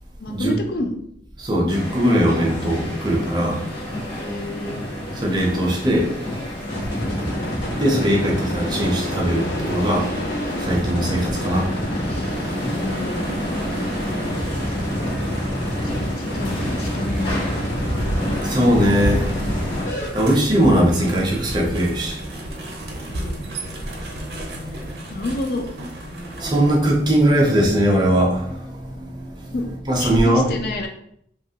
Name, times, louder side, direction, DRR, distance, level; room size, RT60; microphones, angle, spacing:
voice 1, 0.2-1.0 4.2-4.8 7.0-7.3 12.6-13.4 14.7-15.1 15.8-17.4 23.0-23.5 24.7-24.8 25.1-25.7 29.5-30.9, left 2 dB, 55° left, 3 dB, 0.4 m, -29 dB
voice 2, 1.4-3.6 5.1-6.1 7.8-10.1 10.6-11.7 14.8-14.9 18.3-19.3 20.1-23.3 24.0-25.3 26.1-29.5 29.9-30.5, equal, 25° right, -1 dB, 0.5 m, -20 dB
sound 1, 1.7-19.9, left 1 dB, 30° left, 0.7 m, -31 dB
sound 2, 6.7-20.1, equal, 90° left, 1.0 m, -27 dB
sound 3, 12.1-26.7, right 1 dB, 75° right, 0.6 m, -33 dB
2.9 x 2.4 x 2.8 m, 0.69 s
head